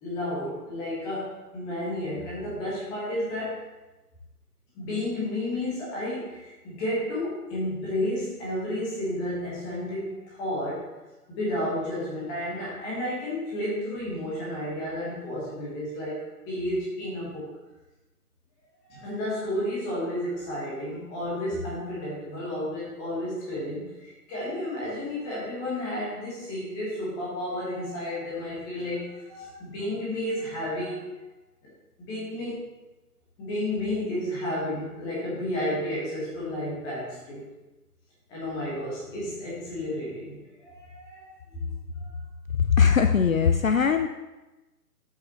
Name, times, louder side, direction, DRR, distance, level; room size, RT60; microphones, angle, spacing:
voice 1, 0.0-3.6 4.7-10.9 11.3-17.5 18.9-31.1 31.6-31.7 32.0-32.6 33.4-37.4 38.3-41.3 41.6-42.1, left 1 dB, 10° left, -6 dB, 1.3 m, -32 dB
voice 2, 42.6-44.1, left 6 dB, 60° left, 8 dB, 0.5 m, -20 dB
12.5 x 5.8 x 2.9 m, 1.1 s
figure-of-eight pair, 145°, 47 cm